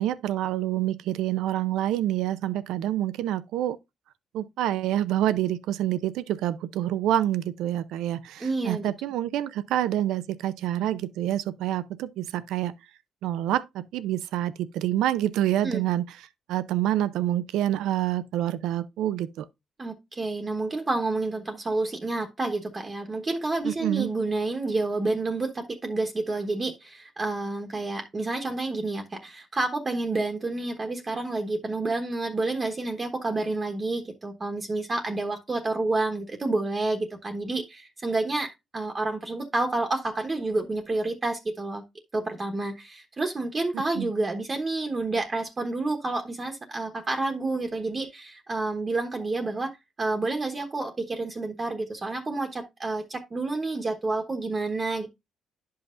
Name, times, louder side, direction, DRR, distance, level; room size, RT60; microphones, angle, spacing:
voice 1, 0.0-3.8 4.3-12.7 13.2-16.1 16.5-19.4 23.6-24.1 43.7-44.1, right 12 dB, 90° right, 0.5 m, -27 dB
voice 2, 8.4-8.9 15.6-15.8 19.8-41.8 42.1-49.7 50.0-55.1, right 2 dB, 30° right, 1.1 m, -29 dB
10.5 x 5.6 x 2.5 m
cardioid pair, 90°, 0 cm